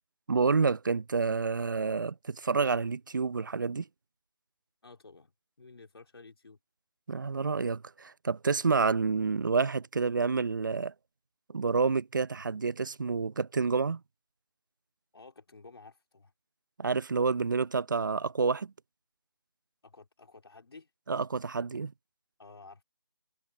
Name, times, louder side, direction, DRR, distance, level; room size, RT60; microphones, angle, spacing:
voice 1, 0.3-3.9 7.1-10.9 11.5-14.0 16.8-18.7 21.1-21.9, right 4 dB, 45° right, 0.8 m, -29 dB
voice 2, 4.8-5.3 5.6-6.6 15.1-16.3 19.8-20.9 22.4-22.8, left 3 dB, 65° left, 3.7 m, -52 dB
figure-of-eight pair, 175°, 14 cm